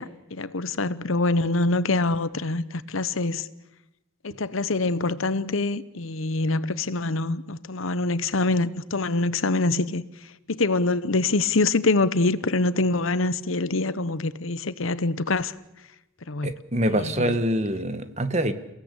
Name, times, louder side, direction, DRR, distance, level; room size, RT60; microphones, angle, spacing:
voice 1, 0.0-3.4 4.2-10.0 10.5-15.5 16.3-16.5 16.9-17.3, left 2 dB, 80° left, 1.0 m, -25 dB
voice 2, 16.4-18.5, right 1 dB, 35° right, 1.4 m, -25 dB
29.5 x 17.5 x 8.4 m
head